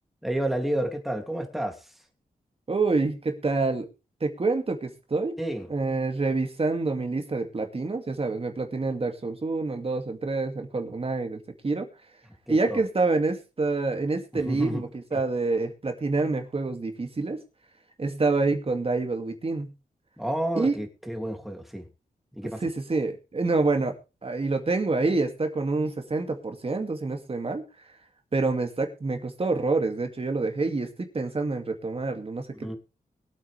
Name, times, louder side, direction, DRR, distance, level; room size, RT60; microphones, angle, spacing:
voice 1, 0.2-1.8 5.4-5.7 12.5-12.8 14.3-14.8 15.1-15.2 20.2-21.9 22.3-22.6 32.5-32.7, right 1 dB, ahead, 2.8 m, -30 dB
voice 2, 2.7-3.9 4.2-5.4 5.7-11.9 12.5-17.4 18.0-19.7 20.6-20.8 22.6-23.9 24.2-27.6 28.3-32.5, right 3 dB, 40° right, 2.4 m, -27 dB
22.0 x 8.6 x 3.4 m
wide cardioid pair, 95°, 15 cm